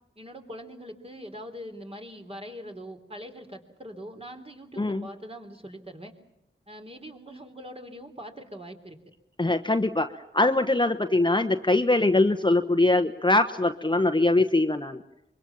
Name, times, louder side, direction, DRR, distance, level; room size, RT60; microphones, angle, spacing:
voice 1, 0.2-6.1 6.7-9.0, equal, 30° right, 4 dB, 3.6 m, -42 dB
voice 2, 4.8-5.1 9.4-15.0, left 2 dB, 25° left, 5 dB, 1.1 m, -22 dB
25.0 x 23.0 x 7.3 m, 0.87 s
wide cardioid pair, 65°, 20 cm